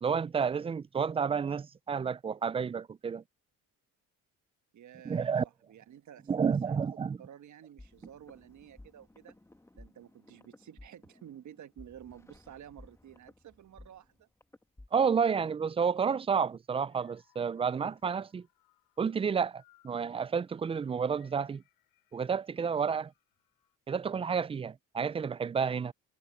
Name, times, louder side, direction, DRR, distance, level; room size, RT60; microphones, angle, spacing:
voice 1, 0.0-3.2 5.0-5.4 6.3-7.2 14.9-18.5 19.0-21.6 22.1-23.1 23.9-25.9, right 6 dB, 15° right, 0.3 m, -30 dB
voice 2, 4.7-6.8 7.2-9.4 9.7-14.3, right 10 dB, 55° right, 1.4 m, -52 dB
sound 1, 7.8-15.3, left 1 dB, 10° left, 1.4 m, -56 dB
sound 2, 16.9-23.8, left 16 dB, 80° left, 4.5 m, -69 dB
cardioid pair, 95°, 36 cm